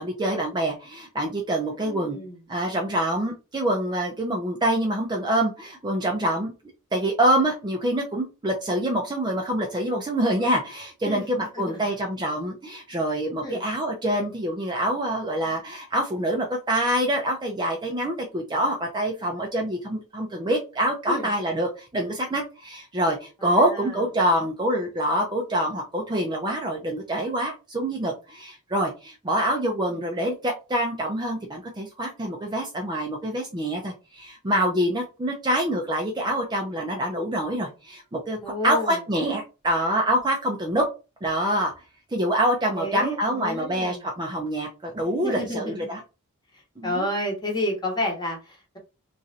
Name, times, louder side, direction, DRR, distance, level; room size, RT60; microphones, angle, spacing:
voice 1, 0.0-2.2 2.5-6.5 6.9-38.4 38.6-40.8 41.2-41.7 42.1-46.0 46.8-47.1, right 1 dB, 20° right, 0.5 m, -26 dB
voice 2, 1.7-2.4 11.0-11.3 11.5-11.8 13.4-13.6 21.1-21.3 23.4-23.8 29.9-30.0 38.4-39.0 42.7-44.0 45.2-45.9 46.8-48.8, left 1 dB, 20° left, 1.0 m, -30 dB
3.1 x 2.5 x 2.7 m
head